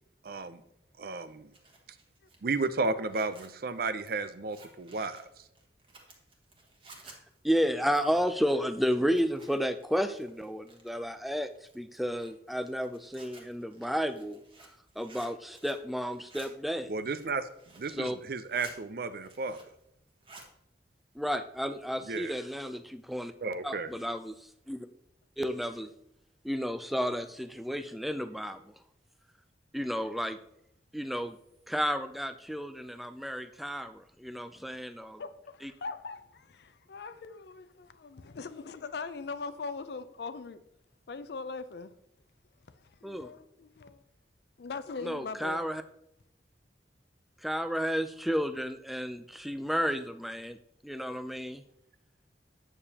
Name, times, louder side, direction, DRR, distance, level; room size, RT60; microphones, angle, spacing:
voice 1, 0.2-0.6 1.0-1.5 2.4-5.4 16.9-17.5 17.7-19.6 22.1-22.3 23.4-23.9, right 3 dB, 55° right, 0.5 m, -33 dB
Zipper (clothing), 1.3-9.8 10.1-11.1 11.6-15.9 16.1-16.5 17.0-18.0 18.3-18.8 19.1-19.8 20.1-20.5, right 3 dB, 30° right, 1.3 m, -54 dB
voice 2, 7.4-11.5 11.7-14.4 15.0-16.9 18.0-18.2 21.2-23.3 23.6-24.9 25.4-25.9 26.4-28.7 29.7-30.4 30.9-31.4 31.7-35.2 35.6-35.7 43.0-43.3 45.0-45.8 47.4-50.6 50.8-51.6, equal, ahead, 0.3 m, -32 dB
voice 3, 35.2-40.6 41.1-41.9 43.0-44.0 44.6-45.6, left 4 dB, 65° left, 0.4 m, -41 dB
8.8 x 6.7 x 2.8 m
head